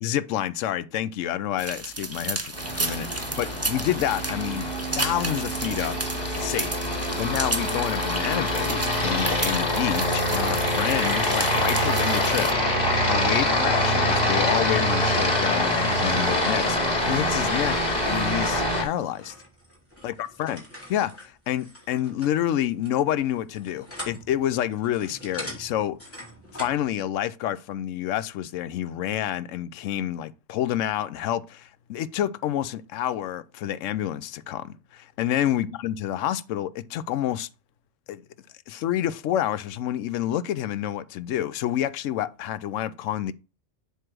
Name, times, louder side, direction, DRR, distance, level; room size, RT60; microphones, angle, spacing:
voice 1, 0.0-6.0 6.3-12.5 13.1-17.8 18.1-19.3 20.0-26.0 26.6-37.5 38.1-38.2 38.7-43.3, left 11 dB, 80° left, 0.9 m, -28 dB
sound 1, 1.6-12.5, right 2 dB, 15° right, 0.5 m, -33 dB
Aircraft, 2.5-18.8, left 1 dB, 35° left, 2.4 m, -25 dB
sound 2, 19.0-26.9, equal, 10° left, 2.6 m, -43 dB
7.7 x 3.3 x 6.0 m
omnidirectional pair, 1.3 m